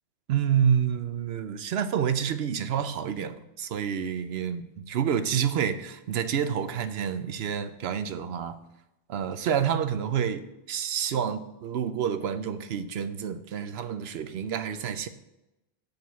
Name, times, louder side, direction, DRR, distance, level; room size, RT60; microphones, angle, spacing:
voice 1, 0.3-8.6 9.1-15.1, right 8 dB, 70° right, 0.8 m, -28 dB
6.8 x 6.5 x 6.8 m
omnidirectional pair, 1.1 m